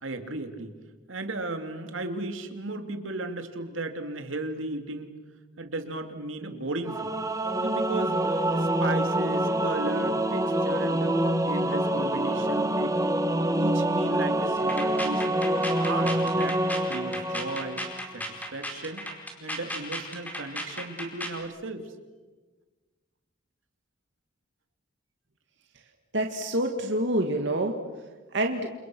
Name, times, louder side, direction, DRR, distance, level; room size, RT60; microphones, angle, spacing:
voice 1, 0.0-0.8 1.1-5.1 5.6-7.1 7.6-11.2 11.4-12.9 13.3-15.2 15.5-17.8 18.1-18.2 18.5-19.1 19.4-21.9, right 2 dB, 80° right, 6 dB, 2.8 m, -35 dB
Singing / Musical instrument, 6.9-18.1, right 1 dB, 15° right, 1.5 m, -26 dB
sound 1, 14.6-21.4, equal, 10° left, 4.7 m, -35 dB
voice 2, 26.1-27.8 28.3-28.7, right 1 dB, 65° right, 3 dB, 2.2 m, -27 dB
30.0 x 28.0 x 6.3 m, 1.3 s
head